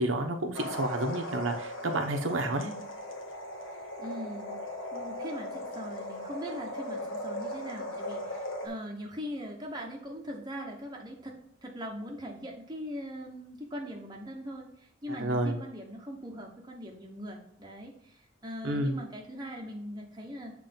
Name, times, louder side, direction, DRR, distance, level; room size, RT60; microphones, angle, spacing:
voice 1, 0.0-2.7 15.2-15.6 18.6-19.0, right 1 dB, 80° right, 3 dB, 0.9 m, -30 dB
sound 1, 0.5-8.7, left 1 dB, 80° left, 1.2 m, -38 dB
voice 2, 4.0-4.6 4.9-11.3 11.6-20.5, equal, 20° right, 0 dB, 1.0 m, -41 dB
7.3 x 3.3 x 5.2 m, 0.73 s
head